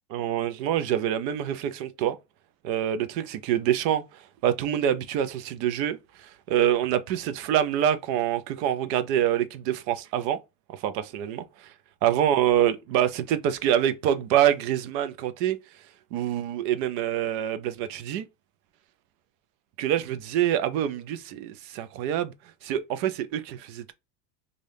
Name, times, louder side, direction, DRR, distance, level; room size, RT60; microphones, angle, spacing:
voice 1, 0.1-2.2 2.6-10.4 10.7-11.7 12.0-15.6 16.1-18.3 19.8-22.3 22.6-23.9, right 10 dB, 75° right, 0.7 m, -26 dB
2.7 x 2.5 x 3.3 m
cardioid pair, 155°, 50 cm